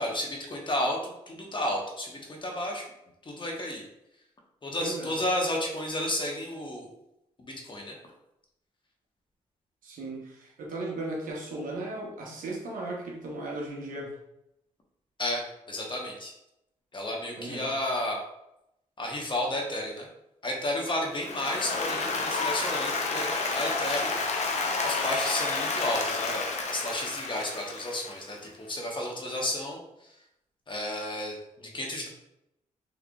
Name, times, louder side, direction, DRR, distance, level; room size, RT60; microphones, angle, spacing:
voice 1, 0.0-2.8 3.2-3.8 4.6-6.9 7.4-7.9 15.2-16.3 16.9-18.2 19.0-20.1 20.4-30.1 30.7-32.1, left 1 dB, 35° left, 0 dB, 1.0 m, -32 dB
voice 2, 4.8-5.1 9.8-14.2 17.4-17.7, right 2 dB, 80° right, -1 dB, 1.0 m, -36 dB
Applause, 21.1-28.3, left 3 dB, 55° left, 0.7 m, -30 dB
3.7 x 3.4 x 2.3 m, 0.84 s
cardioid pair, 60°, 14 cm